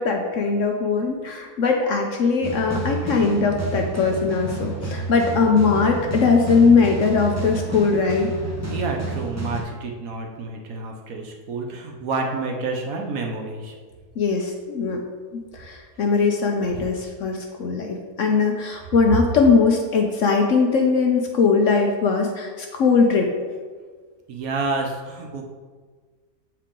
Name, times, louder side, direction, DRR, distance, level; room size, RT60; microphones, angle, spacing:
voice 1, 0.0-8.3 14.2-15.0 15.5-23.3, left 4 dB, 60° left, 2 dB, 0.9 m, -20 dB
sound 1, 2.4-9.6, right 2 dB, 15° right, 0.7 m, -30 dB
voice 2, 8.7-13.7 24.3-25.4, right 3 dB, 65° right, 2 dB, 1.1 m, -29 dB
7.4 x 4.6 x 3.8 m, 1.5 s
omnidirectional pair, 1.7 m